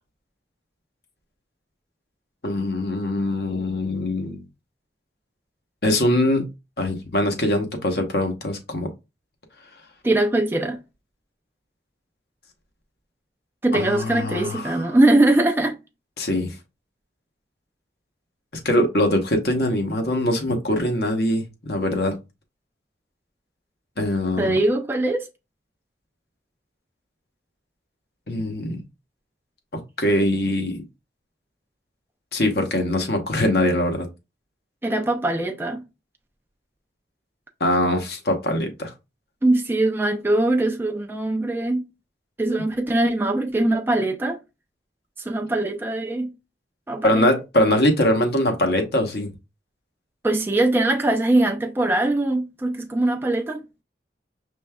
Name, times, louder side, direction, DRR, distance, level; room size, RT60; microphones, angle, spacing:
voice 1, 2.4-4.4 5.8-6.5 6.8-8.9 13.7-14.8 16.2-16.5 18.6-22.2 24.0-24.6 28.3-28.8 29.7-30.8 32.3-34.1 37.6-38.9 42.5-42.6 47.0-49.3, left 1 dB, 60° left, 1.0 m, -22 dB
voice 2, 10.0-10.8 13.6-15.8 24.4-25.3 34.8-35.8 39.4-41.9 42.4-44.4 45.2-46.3 46.9-47.3 50.2-53.6, right 2 dB, 10° right, 0.4 m, -21 dB
5.2 x 3.3 x 2.3 m
head